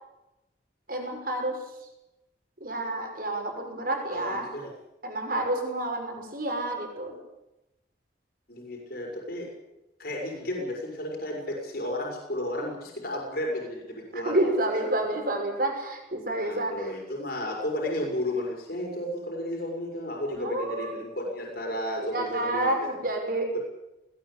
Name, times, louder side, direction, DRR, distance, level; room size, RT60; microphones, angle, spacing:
voice 1, 0.9-1.6 2.6-4.5 5.0-7.2 14.1-16.7 20.3-21.0 22.1-23.6, right 1 dB, 50° right, 3 dB, 5.9 m, -29 dB
voice 2, 4.1-4.7 8.5-9.5 10.0-14.4 14.7-14.9 16.3-22.9 23.5-23.6, left 1 dB, 55° left, -1 dB, 5.9 m, -33 dB
19.0 x 17.5 x 8.5 m, 0.92 s
head